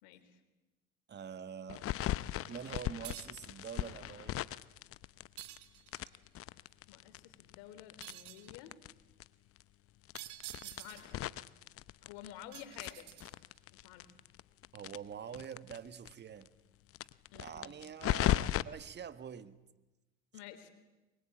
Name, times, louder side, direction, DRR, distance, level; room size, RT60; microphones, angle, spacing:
voice 1, 0.0-0.4 6.9-8.7 10.6-11.3 12.0-13.1 13.7-14.1 17.3-17.7 20.3-20.7, left 11 dB, 75° left, 3.6 m, -51 dB
voice 2, 1.1-1.9 2.5-4.5 14.7-16.5 17.3-19.6, right 7 dB, 35° right, 1.6 m, -46 dB
sound 1, 1.7-5.6 5.9-8.9 9.2-9.3 9.6-9.7 10.1-12.4 12.7-15.8 16.1-16.2 16.4-16.5 16.9-18.6, left 13 dB, 45° left, 0.8 m, -37 dB
sound 2, 3.0-3.5 5.4-6.1 8.0-8.5 10.1-11.2 12.5-13.6, right 16 dB, 65° right, 1.9 m, -49 dB
23.0 x 22.5 x 8.8 m
supercardioid pair, 90°, 32 cm